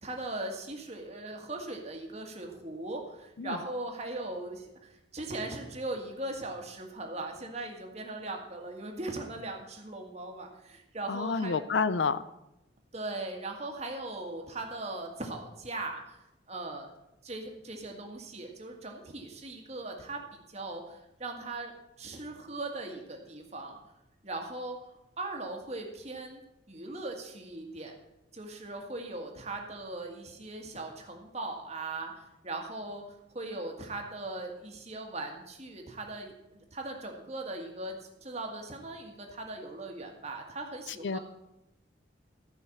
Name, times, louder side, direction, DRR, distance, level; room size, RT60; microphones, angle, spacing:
voice 1, 0.0-11.6 12.9-16.2 16.5-16.9 17.2-21.7 22.0-23.8 24.2-24.8 25.2-26.4 26.7-28.0 28.3-41.2, right 2 dB, 35° right, 2 dB, 1.8 m, -39 dB
voice 2, 11.1-12.2 41.0-41.2, left 5 dB, 70° left, 15 dB, 0.5 m, -29 dB
14.0 x 5.6 x 7.3 m, 0.89 s
head